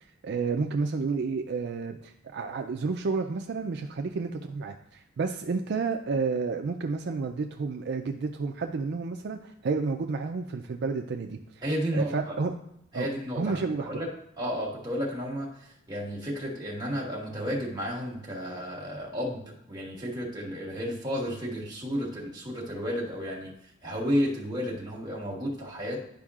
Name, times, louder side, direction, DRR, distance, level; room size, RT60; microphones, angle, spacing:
voice 1, 0.2-11.4 11.9-12.5 12.9-13.1 13.4-14.0, right 4 dB, 60° right, 5 dB, 0.4 m, -30 dB
voice 2, 11.6-12.3 12.9-14.1 14.4-23.5 23.8-26.0, equal, 20° right, -4 dB, 1.5 m, -32 dB
10.5 x 5.2 x 2.4 m, 0.76 s
head